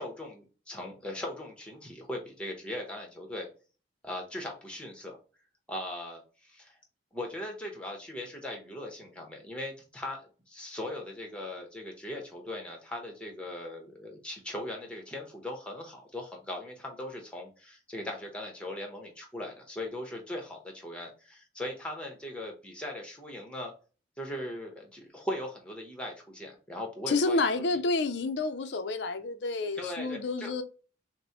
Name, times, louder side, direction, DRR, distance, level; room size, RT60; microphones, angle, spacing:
voice 1, 0.0-3.5 4.0-5.2 5.7-6.7 7.1-10.2 10.5-23.7 24.2-27.6 29.8-30.6, left 1 dB, 5° left, 1.0 m, -39 dB
voice 2, 27.1-30.6, left 3 dB, 70° left, 0.5 m, -29 dB
6.0 x 2.2 x 2.9 m
head